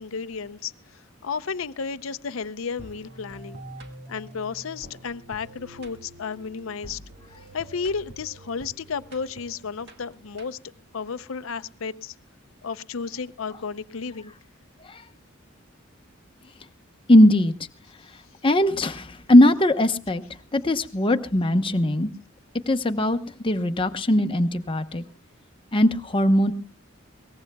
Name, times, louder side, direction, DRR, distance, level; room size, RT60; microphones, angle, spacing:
voice 1, 0.0-3.6 4.1-7.0 7.5-10.6 10.9-12.1 12.6-14.3, left 5 dB, 70° left, 0.6 m, -33 dB
sound 1, 2.8-10.9, right 1 dB, 55° right, 2.1 m, -46 dB
voice 2, 17.1-17.5 18.4-20.2 20.5-22.1 22.7-23.2 23.4-25.0 25.7-26.5, left 1 dB, 25° left, 0.9 m, -19 dB
23.0 x 18.5 x 2.3 m
head